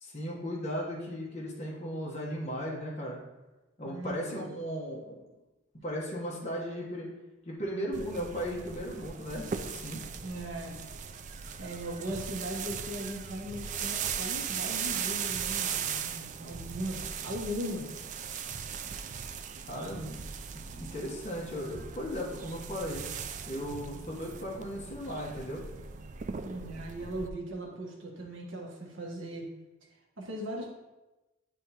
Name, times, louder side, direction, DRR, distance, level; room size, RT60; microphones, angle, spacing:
voice 1, 0.0-3.2 3.8-5.2 5.8-7.1 7.4-10.0 19.7-20.2 20.5-23.0 23.4-25.6, equal, 35° left, -4 dB, 1.1 m, -36 dB
voice 2, 3.8-4.6 10.2-10.8 11.6-18.1 26.4-29.5 30.2-30.7, equal, 70° right, -2 dB, 1.2 m, -38 dB
sound 1, 7.9-27.3, right 7 dB, 40° right, 0.3 m, -38 dB
10.0 x 3.4 x 2.9 m, 1.0 s
head